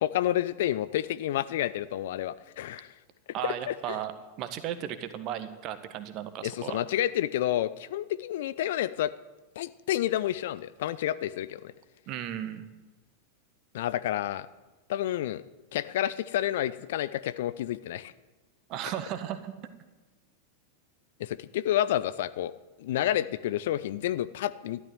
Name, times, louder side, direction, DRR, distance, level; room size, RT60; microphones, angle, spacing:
voice 1, 0.0-2.9 3.4-4.0 6.4-9.1 9.6-11.6 13.7-14.5 14.9-15.4 15.7-18.1 21.2-22.5 22.8-24.8, left 12 dB, 55° left, 15 dB, 0.6 m, -29 dB
voice 2, 3.3-4.1 4.4-6.8 12.1-12.7 18.7-19.5, right 11 dB, 40° right, 11 dB, 1.4 m, -35 dB
13.5 x 12.0 x 7.9 m, 1.2 s
figure-of-eight pair, 90°, 0 cm